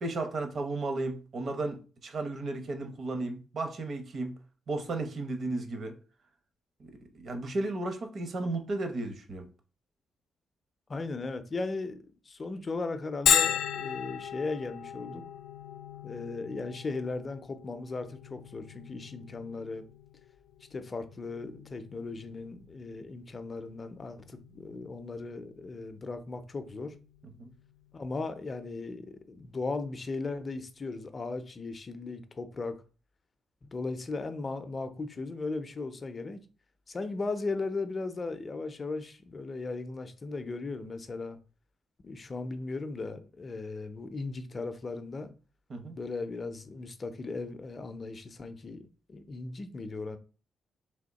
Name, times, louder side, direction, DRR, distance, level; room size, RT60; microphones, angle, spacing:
voice 1, 0.0-4.4 4.7-6.0 6.8-9.5 27.4-27.5 45.7-46.0, right 2 dB, 50° right, 0.8 m, -34 dB
voice 2, 10.9-12.0 12.3-15.2 16.0-19.9 20.7-26.9 27.9-32.7 33.7-36.4 36.9-41.4 42.0-45.3 45.9-50.2, left 3 dB, 30° left, 0.5 m, -37 dB
Bell, 13.3-28.7, left 9 dB, 85° left, 0.4 m, -36 dB
3.5 x 3.0 x 4.0 m
cardioid pair, 115°, 0 cm